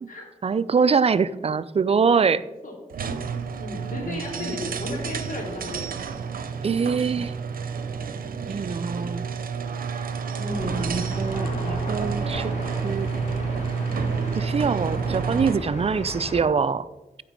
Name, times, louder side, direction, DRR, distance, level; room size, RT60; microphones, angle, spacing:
voice 1, 0.4-2.4 4.0-4.6 6.6-7.3 8.5-9.3 10.6-12.5 12.8-13.1 14.3-16.9, right 5 dB, 45° right, 14 dB, 0.5 m, -24 dB
sound 1, 2.9-15.7, right 5 dB, 85° right, 0.7 m, -30 dB
voice 2, 3.6-5.9 10.3-10.9 11.4-11.6, left 1 dB, 70° left, 0 dB, 3.1 m, -34 dB
sound 2, 10.5-16.4, left 1 dB, 55° left, 3.7 m, -34 dB
14.0 x 5.1 x 5.3 m, 1.0 s
cardioid pair, 65°, 14 cm